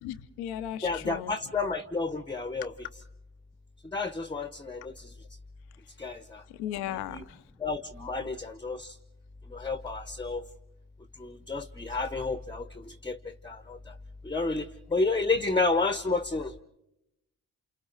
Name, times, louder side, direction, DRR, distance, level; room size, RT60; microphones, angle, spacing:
voice 1, 0.0-1.3 6.6-7.2, left 11 dB, 90° left, 12 dB, 0.7 m, -36 dB
voice 2, 0.8-2.9 3.9-5.1 6.0-6.4 6.9-7.2 7.6-9.0 9.5-10.5 11.2-13.9 14.2-16.5, left 3 dB, 15° left, 11 dB, 0.8 m, -31 dB
29.5 x 27.5 x 3.9 m, 0.90 s
hypercardioid pair, 40°, 37 cm